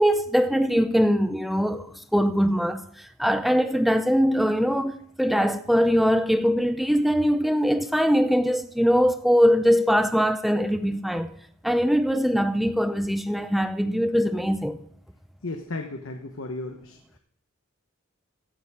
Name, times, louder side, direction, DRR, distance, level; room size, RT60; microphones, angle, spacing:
voice 1, 0.0-1.9 2.1-11.3 11.6-14.8, equal, ahead, 0.5 m, -22 dB
voice 2, 15.4-17.2, left 2 dB, 70° left, 1.0 m, -35 dB
16.0 x 8.8 x 3.6 m
head